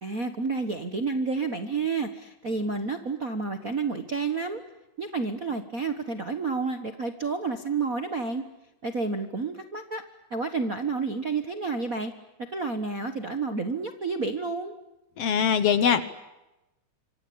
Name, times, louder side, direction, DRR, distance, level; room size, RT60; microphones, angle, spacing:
voice 1, 0.0-4.6 5.0-8.4 8.8-10.0 10.3-12.1 12.4-14.7, right 4 dB, 45° right, 7 dB, 1.2 m, -30 dB
voice 2, 15.2-16.0, left 7 dB, 60° left, 13 dB, 2.1 m, -22 dB
26.5 x 24.0 x 8.7 m, 0.97 s
omnidirectional pair, 3.5 m